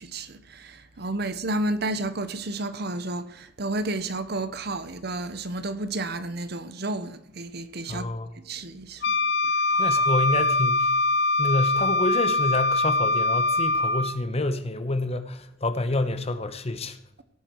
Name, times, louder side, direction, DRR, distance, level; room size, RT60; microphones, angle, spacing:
voice 1, 0.0-8.1 8.3-9.2, right 2 dB, 60° right, 1.0 m, -31 dB
voice 2, 7.9-8.3 9.8-10.9 11.4-17.0, left 2 dB, 35° left, 1.0 m, -28 dB
Wind instrument woodwind instrument, 9.0-14.2, left 2 dB, 65° left, 0.6 m, -23 dB
16.5 x 8.6 x 4.7 m
head